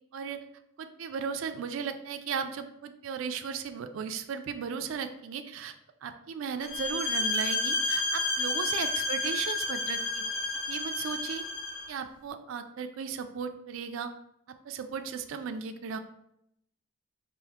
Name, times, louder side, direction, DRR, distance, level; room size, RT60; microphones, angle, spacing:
voice 1, 0.8-5.7 6.0-10.2 10.7-11.4 11.9-14.1 14.6-16.0, right 6 dB, 70° right, 8 dB, 0.3 m, -36 dB
sound 1, 6.6-11.9, left 2 dB, 70° left, 0.9 m, -31 dB
4.5 x 2.5 x 3.5 m, 0.78 s
head